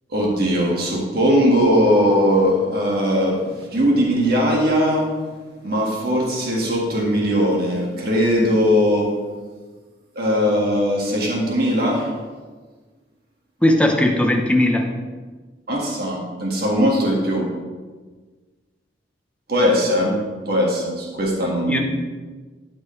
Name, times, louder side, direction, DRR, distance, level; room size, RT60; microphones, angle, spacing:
voice 1, 0.1-5.1 5.6-9.1 10.1-12.1 15.7-17.5 19.5-21.8, equal, 55° right, -2 dB, 1.6 m, -19 dB
voice 2, 13.6-14.9 21.7-21.8, left 1 dB, 5° left, 2 dB, 0.7 m, -17 dB
12.5 x 5.3 x 3.2 m, 1.4 s
head